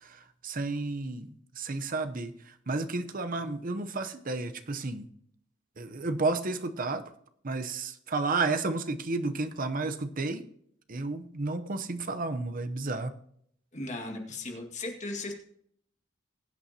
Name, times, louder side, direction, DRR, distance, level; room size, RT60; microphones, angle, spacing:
voice 1, 0.0-1.3 1.6-2.3 2.7-5.1 5.8-7.1 7.4-10.4 10.9-13.1, right 3 dB, 45° right, 10 dB, 0.8 m, -32 dB
voice 2, 13.7-15.3, left 2 dB, 40° left, 2 dB, 2.0 m, -37 dB
21.0 x 8.5 x 2.9 m, 0.68 s
head